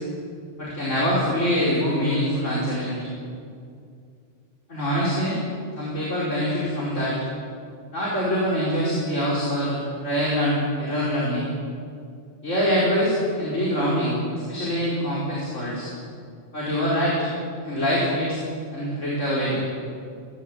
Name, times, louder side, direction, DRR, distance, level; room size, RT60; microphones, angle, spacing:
voice 1, 0.6-3.0 4.7-5.4 5.7-7.1 7.9-11.5 12.4-15.9 16.5-17.3 17.6-18.4 18.7-19.6, equal, 80° left, -7 dB, 5.2 m, -24 dB
19.0 x 17.5 x 8.7 m, 2.3 s
omnidirectional pair, 1.3 m